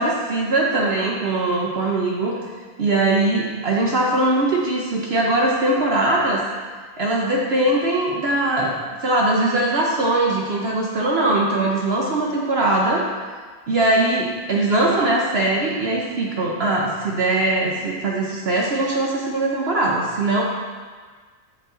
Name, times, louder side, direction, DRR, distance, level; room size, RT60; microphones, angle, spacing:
voice 1, 0.0-2.4 2.8-6.4 7.0-13.0 13.7-20.4, right 2 dB, 60° right, -2 dB, 0.6 m, -21 dB
7.3 x 4.9 x 3.7 m, 1.5 s
omnidirectional pair, 1.9 m